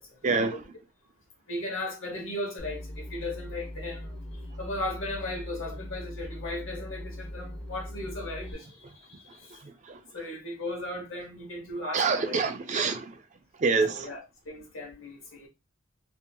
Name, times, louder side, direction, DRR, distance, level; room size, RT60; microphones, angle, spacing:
voice 1, 0.2-0.6 9.6-10.0 11.9-13.1 13.6-14.1, right 4 dB, 35° right, 0.4 m, -26 dB
voice 2, 1.5-4.1 4.6-9.6 10.1-12.4 13.9-15.5, left 1 dB, 85° left, 1.0 m, -36 dB
sound 1, 2.6-8.5, left 1 dB, ahead, 0.7 m, -40 dB
2.6 x 2.6 x 2.2 m
head